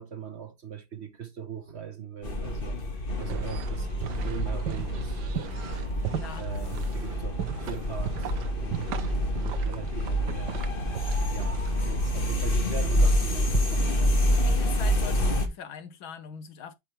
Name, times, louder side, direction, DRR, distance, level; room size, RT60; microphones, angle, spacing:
voice 1, 0.0-2.8 3.2-3.9 4.2-5.7 6.4-10.6 11.3-14.2, right 8 dB, 40° right, 1.0 m, -40 dB
sound 1, 2.2-15.5, equal, 30° left, 1.5 m, -27 dB
sound 2, 3.2-14.3, right 11 dB, 60° right, 1.3 m, -38 dB
voice 2, 6.1-6.5 14.4-16.7, left 7 dB, 75° left, 1.9 m, -41 dB
8.9 x 5.9 x 3.3 m
omnidirectional pair, 2.3 m